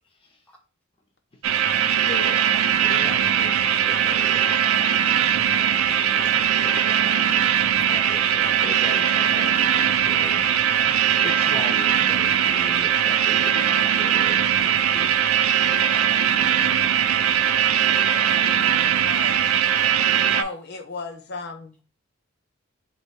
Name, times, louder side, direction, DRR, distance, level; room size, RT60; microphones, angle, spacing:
sound 1, 1.4-20.4, right 9 dB, 75° right, 0.4 m, -20 dB
voice 1, 2.1-2.4 17.2-19.6 20.4-21.8, left 4 dB, 50° left, 0.7 m, -36 dB
voice 2, 2.8-4.7 5.5-7.4 7.9-15.2, left 1 dB, 25° left, 0.9 m, -38 dB
voice 3, 4.9-5.3 8.7-8.9 9.2-9.4 9.7-10.2 10.5-10.7 13.3-13.4 13.9-14.0 14.6-14.7 19.2-19.4 19.7-19.8 20.4-20.5, equal, 5° left, 0.6 m, -49 dB
3.2 x 3.2 x 4.2 m
head